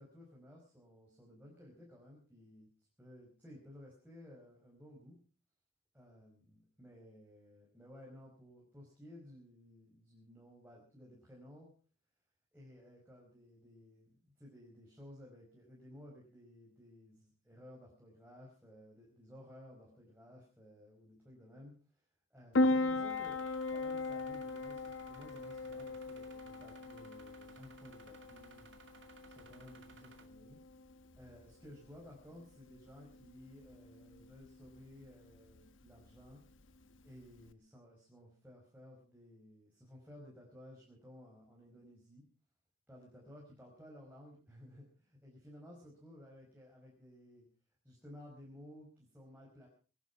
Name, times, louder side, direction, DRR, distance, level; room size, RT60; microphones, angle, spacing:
voice 1, 0.0-2.7 3.0-5.2 5.9-11.7 12.5-21.7 22.3-28.7 29.3-30.6 31.2-36.4 37.0-42.2 42.9-47.5 47.8-49.7, left 1 dB, 10° right, -3 dB, 5.0 m, -56 dB
Piano, 22.5-37.5, left 2 dB, 75° left, 1.1 m, -39 dB
sound 1, 23.1-30.3, right 4 dB, 65° right, 2.3 m, -60 dB
24.5 x 11.0 x 4.7 m, 0.38 s
head